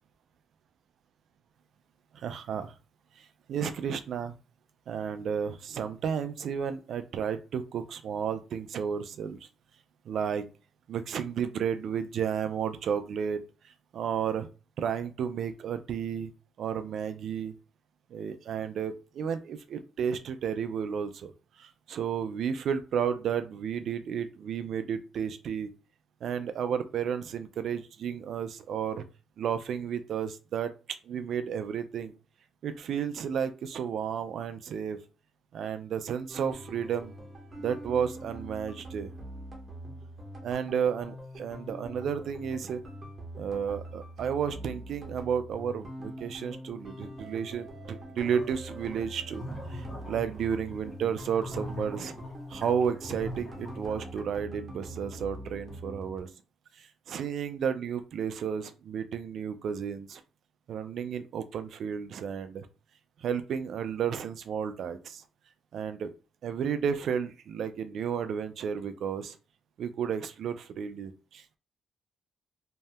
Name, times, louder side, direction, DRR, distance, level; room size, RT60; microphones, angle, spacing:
voice 1, 2.1-2.7 3.2-4.3 4.9-9.5 10.1-10.4 10.9-14.5 14.8-16.3 16.6-17.5 18.1-21.3 21.6-25.7 26.2-29.0 29.4-30.7 31.0-32.1 32.6-35.0 35.5-37.1 37.6-39.1 40.4-42.8 43.4-49.4 49.7-52.1 52.5-56.3 56.7-60.2 60.7-62.7 63.2-65.2 65.7-66.1 66.4-69.4 69.8-71.6, right 7 dB, 65° right, 9 dB, 0.3 m, -32 dB
sound 1, 36.3-56.2, right 1 dB, 35° right, 0.9 m, -44 dB
sound 2, 48.2-54.2, left 1 dB, 35° left, 0.8 m, -42 dB
2.7 x 2.1 x 3.2 m, 0.32 s
cardioid pair, 90°, 0 cm